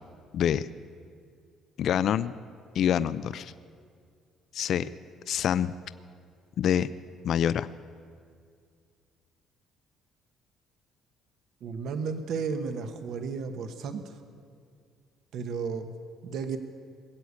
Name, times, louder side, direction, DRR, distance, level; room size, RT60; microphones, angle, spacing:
voice 1, 0.3-0.7 1.8-2.3 2.7-3.5 4.5-4.9 5.3-5.7 6.6-6.9 7.2-7.7, left 9 dB, 60° left, 15 dB, 0.4 m, -26 dB
voice 2, 11.6-14.2 15.3-15.9 16.2-16.6, right 5 dB, 65° right, 7 dB, 1.0 m, -33 dB
21.0 x 8.1 x 8.3 m, 2.2 s
cardioid pair, 110°, 0 cm